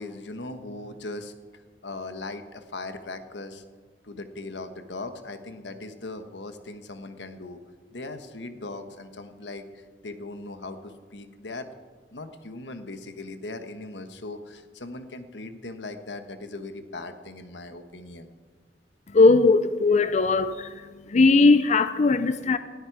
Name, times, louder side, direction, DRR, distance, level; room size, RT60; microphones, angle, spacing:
voice 1, 0.0-3.6 4.0-7.6 7.9-11.7 12.1-18.3, left 2 dB, 90° left, 1.3 m, -39 dB
voice 2, 19.1-22.6, left 3 dB, 40° left, 0.5 m, -19 dB
19.5 x 13.5 x 4.8 m
head